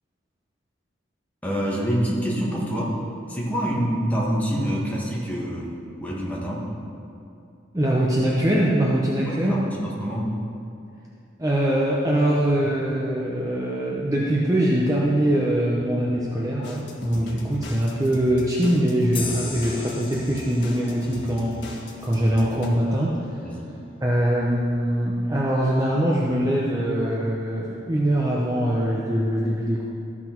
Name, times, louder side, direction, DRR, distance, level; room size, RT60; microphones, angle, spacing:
voice 1, 1.4-3.0 3.3-6.6 9.3-10.3 17.1-17.3 23.4-23.7, equal, 5° left, -5 dB, 1.5 m, -26 dB
voice 2, 7.7-9.6 11.4-23.2 24.0-29.8, right 1 dB, 15° right, -5 dB, 0.8 m, -23 dB
sound 1, 16.6-22.7, left 1 dB, 55° left, 1.4 m, -39 dB
sound 2, 19.1-22.5, left 4 dB, 25° left, 0.9 m, -37 dB
14.0 x 6.1 x 4.5 m, 2.6 s
head